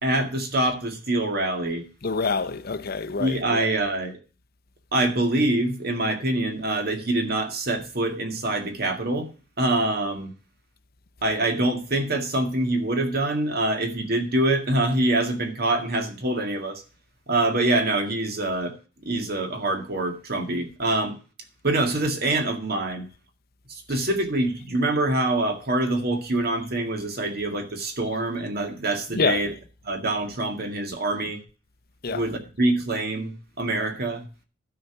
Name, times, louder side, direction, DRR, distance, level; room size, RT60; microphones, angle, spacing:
voice 1, 0.0-1.8 3.2-4.2 4.9-9.3 9.6-10.3 11.2-16.8 17.3-18.7 19.0-21.2 21.6-23.1 23.7-29.5 29.8-31.4 32.1-34.2, right 2 dB, 55° right, 2.0 m, -25 dB
voice 2, 2.0-3.7 29.1-29.4 32.0-32.2, left 4 dB, 55° left, 0.8 m, -26 dB
12.5 x 5.1 x 5.9 m
head